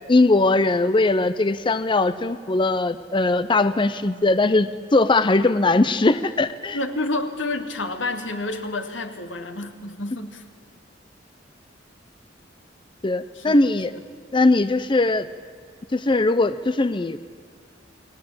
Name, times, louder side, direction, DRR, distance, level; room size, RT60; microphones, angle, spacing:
voice 1, 0.1-6.8 13.0-13.9 14.3-15.3 15.9-17.2, left 2 dB, 25° left, 13 dB, 0.6 m, -20 dB
voice 2, 6.7-10.4 13.3-13.5 13.9-14.0, left 2 dB, 80° left, 6 dB, 2.4 m, -29 dB
29.0 x 20.0 x 8.7 m, 2.2 s
head